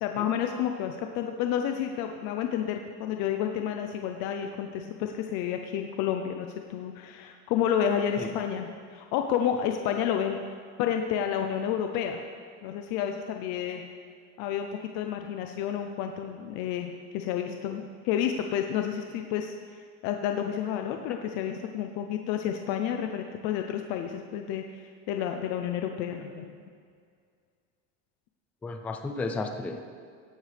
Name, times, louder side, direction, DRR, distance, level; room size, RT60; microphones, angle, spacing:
voice 1, 0.0-10.4 10.8-12.2 12.6-13.8 14.4-14.7 14.9-19.5 20.0-26.5, left 9 dB, 50° left, 5 dB, 0.7 m, -30 dB
voice 2, 28.6-29.8, left 3 dB, 5° left, 5 dB, 0.3 m, -33 dB
17.5 x 11.5 x 3.5 m, 2.2 s
cardioid pair, 170°, 35 cm